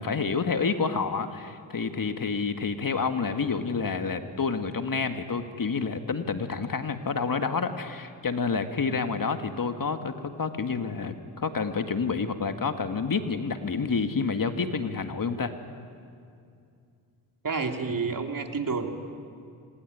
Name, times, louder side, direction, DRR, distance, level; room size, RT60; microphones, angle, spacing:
voice 1, 0.0-15.5, left 5 dB, 45° left, 7 dB, 2.0 m, -29 dB
voice 2, 17.4-19.2, right 4 dB, 45° right, 4 dB, 3.0 m, -30 dB
26.5 x 21.0 x 9.5 m, 2.4 s
supercardioid pair, 50°, 48 cm